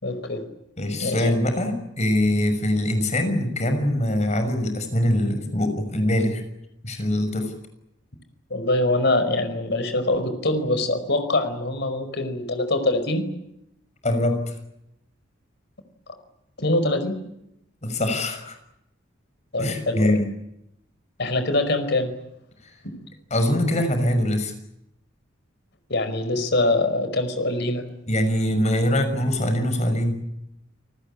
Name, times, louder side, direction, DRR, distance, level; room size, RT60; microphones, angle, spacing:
voice 1, 0.0-0.4 1.0-1.3 8.5-13.3 16.6-17.2 19.5-20.2 21.2-22.1 22.8-23.0 25.9-27.8, left 2 dB, 60° left, 9 dB, 5.1 m, -24 dB
voice 2, 0.8-6.4 6.8-7.5 14.0-14.5 17.8-18.6 19.6-20.3 22.6-22.7 23.3-24.5 28.1-30.2, left 1 dB, 35° left, 8 dB, 6.2 m, -23 dB
30.0 x 20.0 x 8.7 m, 0.82 s
head